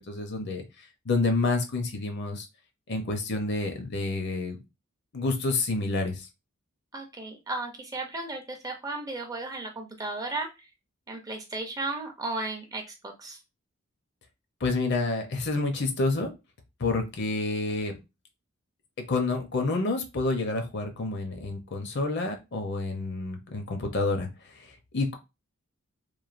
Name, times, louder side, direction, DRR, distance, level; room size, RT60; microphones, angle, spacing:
voice 1, 0.1-2.5 2.9-4.6 5.1-6.3 14.6-16.3 16.8-17.9 19.1-25.1, left 3 dB, 55° left, 5 dB, 0.6 m, -29 dB
voice 2, 6.9-10.5 11.1-13.4, right 2 dB, 15° right, 2 dB, 0.4 m, -35 dB
3.1 x 2.1 x 2.4 m, 0.25 s
head